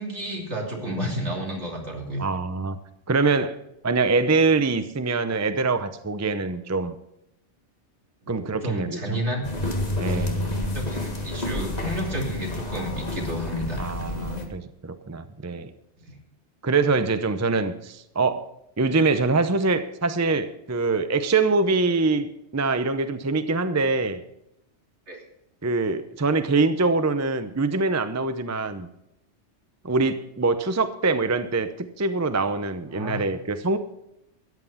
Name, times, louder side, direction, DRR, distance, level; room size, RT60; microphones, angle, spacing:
voice 1, 0.0-2.2 8.2-9.4 10.1-10.3 10.7-14.2 16.1-16.2 25.1-25.2 32.9-33.3, equal, 70° right, -1 dB, 3.3 m, -31 dB
voice 2, 2.2-2.8 3.1-3.6 3.8-6.9 8.3-9.2 10.0-10.7 13.8-15.7 16.6-18.5 18.8-24.2 25.6-28.9 29.8-33.8, right 3 dB, 20° right, 10 dB, 0.6 m, -24 dB
sound 1, 9.4-14.5, left 1 dB, 35° left, 1.9 m, -29 dB
14.0 x 9.6 x 5.7 m, 0.82 s
omnidirectional pair, 1.2 m